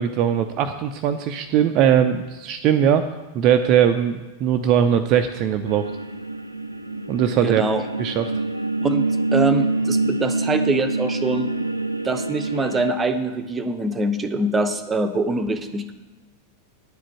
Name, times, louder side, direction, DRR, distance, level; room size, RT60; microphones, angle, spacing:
voice 1, 0.0-3.1 3.3-5.9 7.1-7.6 8.0-8.3, right 9 dB, 40° right, 7 dB, 0.5 m, -20 dB
sound 1, 5.7-12.9, right 2 dB, 90° right, 0.5 m, -25 dB
voice 2, 7.4-7.9 8.8-11.5 12.0-15.9, right 2 dB, 20° right, 9 dB, 0.8 m, -24 dB
10.5 x 5.1 x 8.3 m, 1.2 s
figure-of-eight pair, 90°, 0 cm